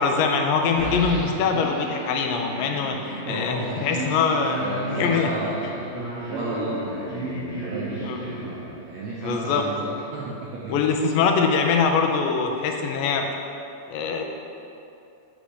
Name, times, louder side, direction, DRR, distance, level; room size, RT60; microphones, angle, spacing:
voice 1, 0.0-4.6 4.9-5.3 5.6-5.7 8.1-8.2 9.2-9.6 10.7-13.3 13.9-14.2, left 5 dB, 80° left, 3 dB, 2.2 m, -23 dB
sound 1, 0.7-9.0, equal, 30° left, 1.6 m, -33 dB
voice 2, 3.2-6.0 6.3-11.0, right 3 dB, 75° right, -4 dB, 1.6 m, -34 dB
6.9 x 5.1 x 6.3 m, 2.7 s
omnidirectional pair, 4.0 m